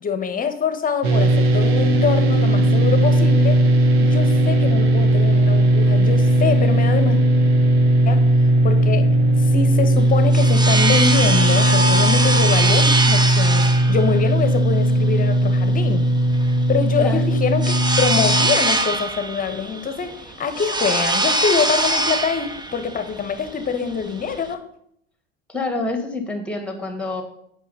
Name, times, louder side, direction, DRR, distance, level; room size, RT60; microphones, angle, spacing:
voice 1, 0.0-3.6 4.0-7.2 8.0-8.2 8.6-9.1 9.4-16.1 16.7-24.6, left 6 dB, 25° left, 9 dB, 1.2 m, -24 dB
sound 1, 1.0-18.5, right 1 dB, 75° right, 1.4 m, -17 dB
sound 2, 10.0-24.5, right 2 dB, 15° right, 0.9 m, -23 dB
voice 2, 25.5-27.2, left 2 dB, 5° left, 4 dB, 2.2 m, -27 dB
8.3 x 5.7 x 5.7 m, 0.71 s
hypercardioid pair, 85°, 32 cm